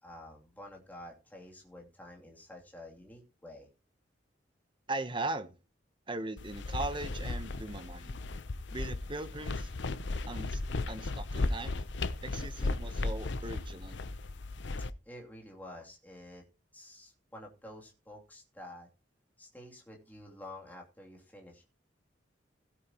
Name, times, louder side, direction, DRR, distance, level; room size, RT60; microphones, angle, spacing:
voice 1, 0.0-3.7 14.8-16.5 16.7-18.9 19.4-21.7, left 1 dB, 10° left, 2.8 m, -50 dB
voice 2, 4.9-5.6 6.1-8.2 8.7-9.7 10.3-10.6 10.9-11.8 12.2-14.0, right 2 dB, 25° right, 0.9 m, -39 dB
sound 1, 6.4-14.9, left 2 dB, 70° left, 0.7 m, -36 dB
16.5 x 8.9 x 3.0 m
head